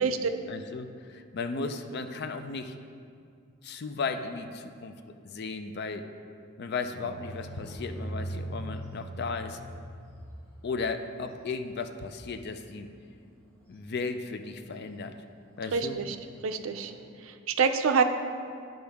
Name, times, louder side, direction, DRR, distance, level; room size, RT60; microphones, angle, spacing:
voice 1, 0.5-2.7 3.6-5.0 5.2-6.0 6.6-9.6 10.6-12.9 13.7-15.2 15.6-16.0, left 4 dB, 50° left, 8 dB, 0.4 m, -35 dB
sound 1, 7.0-13.7 14.4-14.8 15.1-15.2 15.7-17.0, equal, 5° left, 1.2 m, -41 dB
voice 2, 15.7-16.2 16.4-16.9 17.2-18.0, right 5 dB, 70° right, 8 dB, 0.5 m, -26 dB
10.0 x 5.3 x 3.5 m, 2.3 s
head